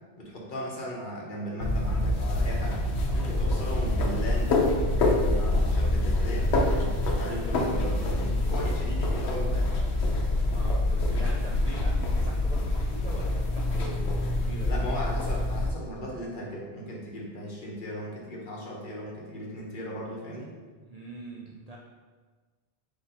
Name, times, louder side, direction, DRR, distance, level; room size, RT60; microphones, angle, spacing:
voice 1, 0.2-2.8 3.1-9.7 14.6-20.5, equal, 55° left, -2 dB, 0.9 m, -37 dB
sound 1, 1.6-15.7, left 1 dB, 80° left, 0.9 m, -26 dB
voice 2, 10.5-14.7 20.8-21.8, right 2 dB, 55° right, -3 dB, 0.4 m, -42 dB
4.1 x 2.9 x 4.0 m, 1.4 s
omnidirectional pair, 1.1 m